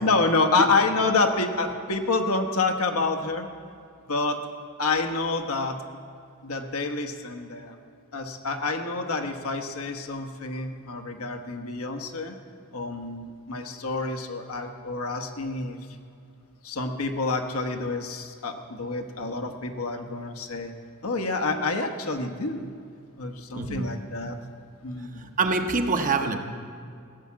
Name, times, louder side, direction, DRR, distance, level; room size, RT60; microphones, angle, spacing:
voice 1, 0.0-3.5 4.1-4.4 4.8-5.8 6.4-7.7 8.1-12.3 12.7-15.8 16.6-20.7 21.0-22.7 23.2-24.4 24.8-25.3, left 3 dB, 75° left, 5 dB, 1.1 m, -28 dB
voice 2, 23.5-24.0 25.0-26.4, right 3 dB, 40° right, 6 dB, 0.8 m, -26 dB
15.5 x 7.1 x 8.5 m, 2.4 s
head